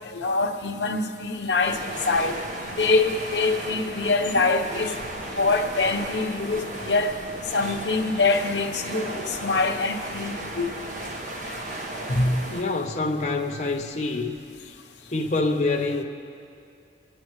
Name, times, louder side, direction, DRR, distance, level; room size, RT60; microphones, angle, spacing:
voice 1, 0.0-2.3 2.8-4.9 5.3-7.1 7.5-10.7 12.1-12.4, left 3 dB, 85° left, 4 dB, 1.0 m, -24 dB
sound 1, 1.6-12.6, right 1 dB, 45° right, 1.2 m, -35 dB
voice 2, 12.5-14.4 15.1-16.0, left 3 dB, 40° left, 1 dB, 0.8 m, -26 dB
27.5 x 9.9 x 3.2 m, 2.4 s
head